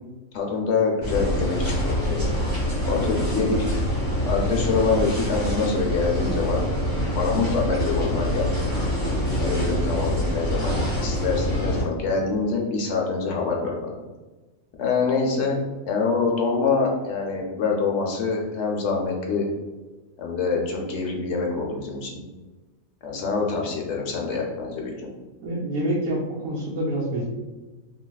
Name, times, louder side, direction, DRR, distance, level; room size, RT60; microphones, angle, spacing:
voice 1, 0.3-2.3 2.8-3.7 4.2-6.6 7.2-8.5 9.4-14.0 14.8-15.6 15.9-19.5 20.2-22.2 23.0-25.1, left 4 dB, 65° left, -1 dB, 0.8 m, -25 dB
sound 1, 1.0-11.8, equal, 60° right, 1.7 m, -25 dB
voice 2, 25.4-27.2, right 1 dB, 80° right, -6 dB, 1.1 m, -27 dB
3.1 x 2.7 x 2.3 m, 1.2 s
omnidirectional pair, 1.4 m